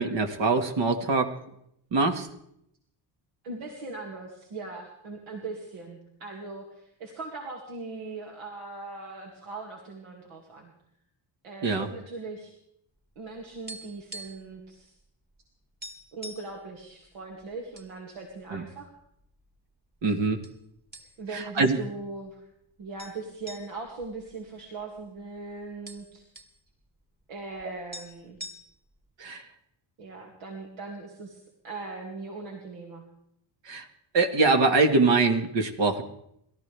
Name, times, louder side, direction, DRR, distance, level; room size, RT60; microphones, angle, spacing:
voice 1, 0.0-1.3 1.9-2.3 11.6-11.9 18.5-18.6 20.0-20.4 21.6-21.8 29.2-29.4 33.7-33.9 34.1-36.0, right 3 dB, 60° right, 5 dB, 2.0 m, -23 dB
voice 2, 3.4-10.7 11.4-12.6 13.2-14.9 16.1-18.9 21.2-22.5 22.8-26.2 27.3-28.4 30.0-33.0, right 3 dB, 80° right, 0 dB, 2.6 m, -40 dB
sound 1, 13.1-14.6 14.8-15.0 15.4-15.5 15.8-16.6 17.2-17.9 18.3-18.4 19.1-19.7 20.4-20.6 20.9-21.5 21.8-21.9 23.0-25.0 25.3-25.4 25.6-26.6 27.6-27.7 27.9-29.0, equal, 20° right, 2.1 m, -44 dB
28.5 x 13.5 x 3.5 m, 0.76 s
supercardioid pair, 70°, 48 cm